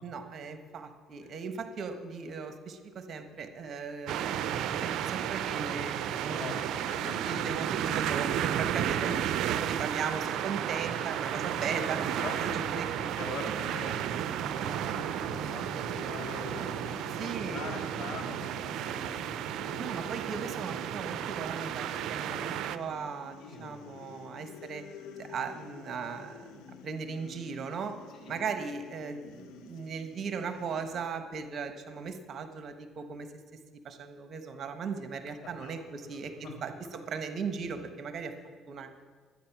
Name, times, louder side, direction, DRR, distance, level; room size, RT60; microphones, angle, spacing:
voice 1, 0.0-6.5 7.3-12.0 12.4-12.9 17.1-17.7 19.8-24.8 25.2-28.0 28.3-33.3 33.7-36.3 36.6-38.3 38.7-38.9, right 5 dB, 50° right, 8 dB, 1.2 m, -38 dB
sound 1, 4.1-22.8, right 10 dB, 70° right, 0.5 m, -33 dB
voice 2, 6.2-7.3 10.9-11.4 11.8-12.5 13.0-20.5 23.4-23.8 24.2-24.4 28.1-28.3 35.6-35.7 36.0-36.5, left 3 dB, 55° left, 1 dB, 3.6 m, -45 dB
sound 2, 13.6-31.1, left 7 dB, 80° left, 0.9 m, -50 dB
12.0 x 9.5 x 5.9 m, 1.5 s
supercardioid pair, 80°, 0 cm